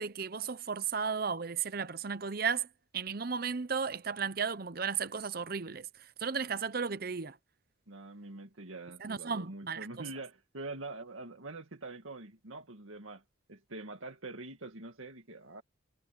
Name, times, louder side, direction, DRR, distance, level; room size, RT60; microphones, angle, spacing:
voice 1, 0.0-2.7 2.9-5.9 6.2-7.4 9.0-9.9, right 6 dB, 50° right, 0.8 m, -34 dB
voice 2, 7.9-13.2 13.5-15.6, right 2 dB, 90° right, 2.1 m, -45 dB
head